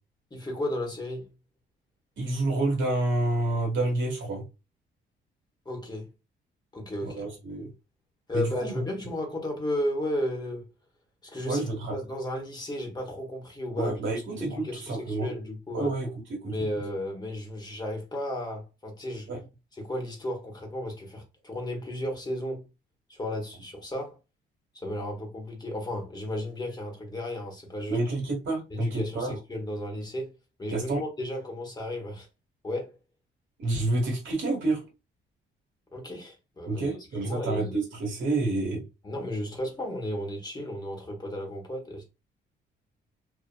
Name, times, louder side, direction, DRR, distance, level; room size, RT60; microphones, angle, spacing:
voice 1, 0.3-1.3 5.6-6.1 6.7-7.2 8.3-10.7 11.2-11.6 11.9-15.9 16.4-19.3 19.8-22.7 23.1-24.2 24.7-28.0 28.7-32.3 32.6-32.9 35.9-37.8 39.0-42.0, left 1 dB, 20° left, 1.1 m, -34 dB
voice 2, 2.2-4.4 7.0-7.7 8.3-8.8 11.5-12.0 13.8-15.3 15.7-16.6 19.3-19.4 27.9-29.3 30.7-31.0 33.6-34.8 36.7-38.8, right 2 dB, 70° right, 1.5 m, -29 dB
2.7 x 2.5 x 2.4 m
cardioid pair, 90°, 20 cm